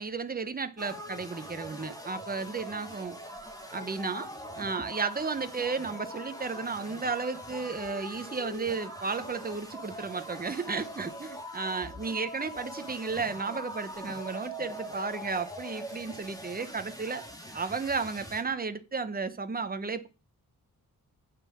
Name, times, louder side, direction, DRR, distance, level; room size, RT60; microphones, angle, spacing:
voice 1, 0.0-3.2 3.7-4.3 4.6-17.2 17.5-20.1, right 4 dB, 25° right, 1.0 m, -33 dB
sound 1, 0.8-18.4, left 1 dB, 10° left, 2.2 m, -42 dB
8.6 x 7.4 x 7.2 m
wide cardioid pair, 145°, 36 cm